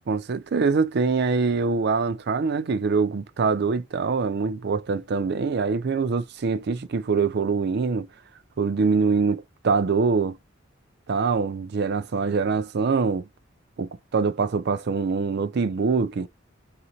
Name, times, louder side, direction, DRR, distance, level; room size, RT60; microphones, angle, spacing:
voice 1, 0.1-8.1 8.6-10.4 11.1-13.3 13.8-16.3, right 4 dB, 60° right, 0.4 m, -24 dB
3.8 x 2.1 x 2.8 m
head